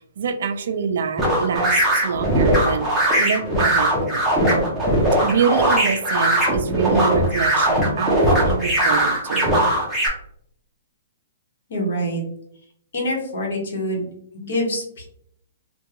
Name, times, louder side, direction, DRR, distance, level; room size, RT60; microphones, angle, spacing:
voice 1, 0.0-2.9 3.2-4.2 5.2-9.5, right 6 dB, 50° right, 7 dB, 0.4 m, -25 dB
sound 1, 1.2-10.1, right 1 dB, 5° right, 0.6 m, -19 dB
voice 2, 11.7-12.2 12.9-14.1 14.3-15.0, equal, 55° left, -1 dB, 1.1 m, -25 dB
3.5 x 2.2 x 2.9 m, 0.69 s
hypercardioid pair, 180°, 0 cm